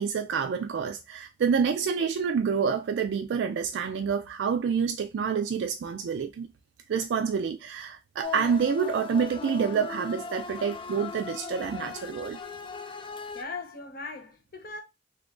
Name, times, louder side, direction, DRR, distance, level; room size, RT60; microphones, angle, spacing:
voice 1, 0.0-6.5 6.9-12.4, right 6 dB, 75° right, 0.3 m, -28 dB
sound 1, 8.2-13.4, left 5 dB, 30° left, 0.4 m, -38 dB
voice 2, 13.3-14.8, left 3 dB, 55° left, 0.9 m, -39 dB
2.9 x 2.4 x 3.6 m
head